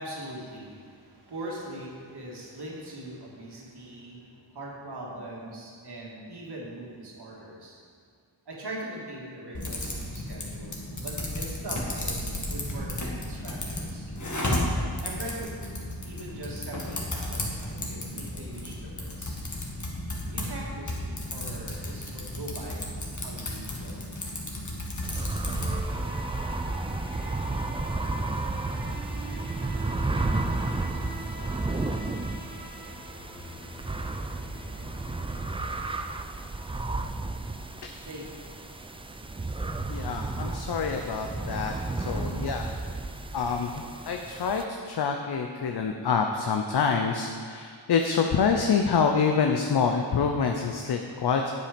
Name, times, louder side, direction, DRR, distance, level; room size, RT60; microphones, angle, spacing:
voice 1, 0.0-7.8 8.5-14.1 15.0-15.5 16.0-19.4 20.3-22.9 23.2-24.0 35.3-40.8 41.3-42.4 43.0-43.4, right 1 dB, 60° right, -4 dB, 2.1 m, -42 dB
Typing, 9.5-25.8, left 1 dB, 40° left, 1.7 m, -33 dB
sound 1, 25.0-44.6, right 2 dB, 10° right, 0.4 m, -32 dB
sound 2, 25.5-36.9, right 1 dB, 25° left, 2.0 m, -44 dB
voice 2, 39.9-42.6 43.3-43.7 44.1-51.5, left 5 dB, 55° left, 4 dB, 0.7 m, -26 dB
8.4 x 7.7 x 5.2 m, 2.1 s
wide cardioid pair, 80°, 46 cm